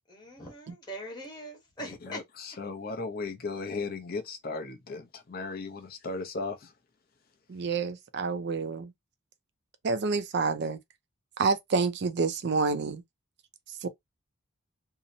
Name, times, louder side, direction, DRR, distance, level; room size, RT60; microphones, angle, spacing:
voice 1, 0.1-2.2, equal, 20° left, 1.1 m, -42 dB
voice 2, 1.8-6.7, left 3 dB, 40° left, 0.5 m, -36 dB
voice 3, 7.5-8.9 9.8-10.8 11.4-13.0 13.8-13.9, right 4 dB, 50° right, 0.4 m, -28 dB
2.8 x 2.0 x 2.6 m
head